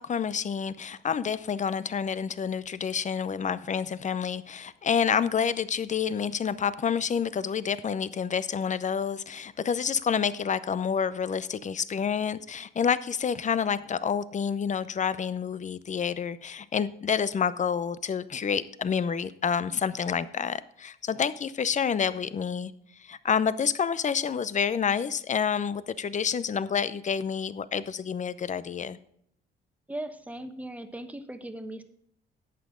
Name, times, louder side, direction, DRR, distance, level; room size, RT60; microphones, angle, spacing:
voice 1, 0.0-22.7 23.0-29.0, left 7 dB, 40° left, 16 dB, 0.7 m, -28 dB
voice 2, 29.9-31.8, right 1 dB, 5° right, 8 dB, 1.1 m, -38 dB
11.0 x 8.3 x 3.8 m, 0.70 s
cardioid pair, 90°, 20 cm